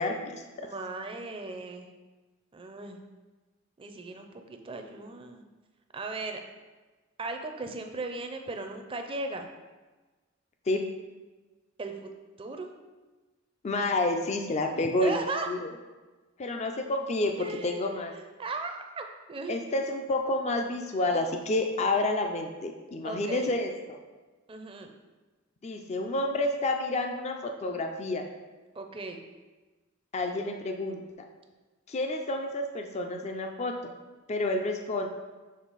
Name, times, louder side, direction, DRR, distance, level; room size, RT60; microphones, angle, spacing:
voice 1, 0.0-0.7 10.7-10.8 13.6-15.1 15.5-15.7 16.4-18.1 19.5-24.0 25.6-28.3 30.1-31.0 31.9-33.9 34.3-35.1, left 2 dB, 30° left, 4 dB, 0.4 m, -29 dB
voice 2, 0.6-1.9 2.5-3.0 3.8-5.4 5.9-6.4 7.2-9.5 11.8-12.1 12.4-12.7 14.8-15.5 17.4-19.7 23.0-23.5 24.5-24.9 28.7-29.2, right 3 dB, 25° right, 5 dB, 0.5 m, -37 dB
6.3 x 3.7 x 4.0 m, 1.3 s
head